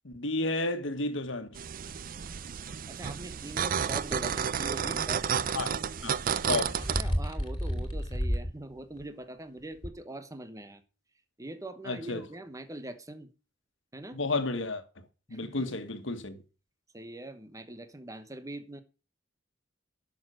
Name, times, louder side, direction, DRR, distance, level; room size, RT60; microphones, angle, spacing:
voice 1, 0.0-1.5 5.5-5.8 6.0-6.2 6.5-6.8 11.8-12.2 14.1-14.8 15.3-16.4, left 2 dB, 75° left, 1.6 m, -32 dB
sound 1, 1.5-7.0, right 7 dB, 45° right, 0.5 m, -31 dB
voice 2, 2.9-5.3 6.9-10.8 11.4-13.3 13.9-14.2 15.3-15.7 16.9-18.8, right 1 dB, 20° right, 1.1 m, -42 dB
sound 2, 3.9-4.2 6.1-8.5 9.0-9.1 9.8-9.9, equal, 25° left, 2.7 m, -32 dB
11.0 x 6.5 x 6.4 m
head